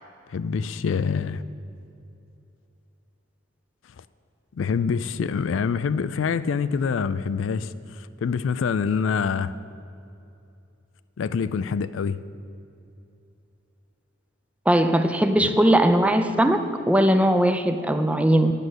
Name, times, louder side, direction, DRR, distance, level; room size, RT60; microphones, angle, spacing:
voice 1, 0.3-1.4 4.0-4.1 4.5-9.5 11.2-12.2 15.4-15.5, left 6 dB, 70° left, 14 dB, 0.4 m, -26 dB
voice 2, 14.7-16.6 16.9-18.5, right 1 dB, 5° right, 8 dB, 0.5 m, -19 dB
10.5 x 6.3 x 7.9 m, 2.8 s
head